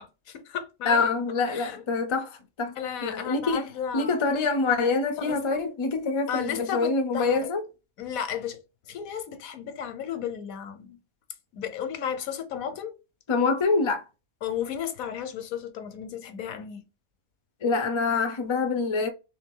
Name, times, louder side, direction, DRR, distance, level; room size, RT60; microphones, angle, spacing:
voice 1, 0.0-1.1 1.5-1.8 2.8-4.2 5.2-5.4 6.3-7.5 8.0-8.6 8.9-11.0 11.5-13.0 14.4-16.8, left 8 dB, 80° left, 1.2 m, -34 dB
voice 2, 0.9-2.3 2.6-2.7 3.0-3.6 3.9-7.6 13.3-14.0 17.6-19.1, left 4 dB, 45° left, 0.4 m, -25 dB
3.4 x 3.3 x 3.7 m
omnidirectional pair, 1.4 m